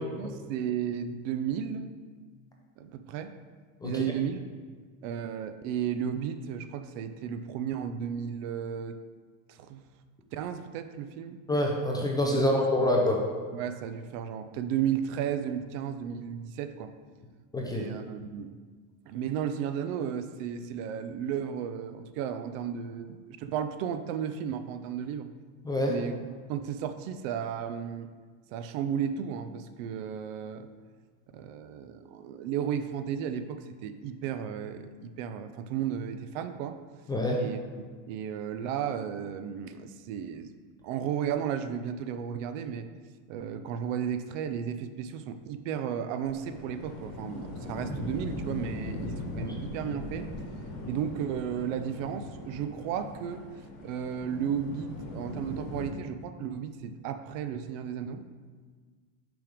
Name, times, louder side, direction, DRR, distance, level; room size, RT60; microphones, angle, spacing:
voice 1, 0.0-1.9 2.8-3.3 3.8-4.5 5.0-9.0 9.5-9.8 10.3-11.4 12.3-12.4 12.7-12.9 13.5-16.9 17.7-18.5 19.1-25.3 25.9-28.1 28.5-30.7 31.3-36.8 37.4-37.6 38.1-40.5 40.8-42.9 43.3-50.3 50.8-53.4 53.8-58.2, right 8 dB, 65° right, 10 dB, 0.6 m, -34 dB
voice 2, 11.5-13.2 17.5-17.9 25.6-25.9 37.1-37.4 49.4-49.5, left 1 dB, 10° left, -1 dB, 0.3 m, -26 dB
sound 1, 46.2-55.9, left 2 dB, 40° left, 1.2 m, -40 dB
6.0 x 3.5 x 5.0 m, 1.5 s
supercardioid pair, 130°, 41 cm